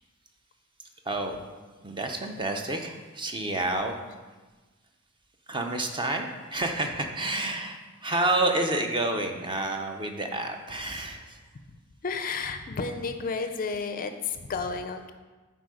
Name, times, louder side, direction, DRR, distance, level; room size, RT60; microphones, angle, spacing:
voice 1, 1.0-1.4 1.8-3.9 5.5-11.4, right 2 dB, 20° right, 4 dB, 0.6 m, -29 dB
voice 2, 12.0-15.1, left 4 dB, 40° left, 8 dB, 0.4 m, -32 dB
7.9 x 4.5 x 4.9 m, 1.3 s
head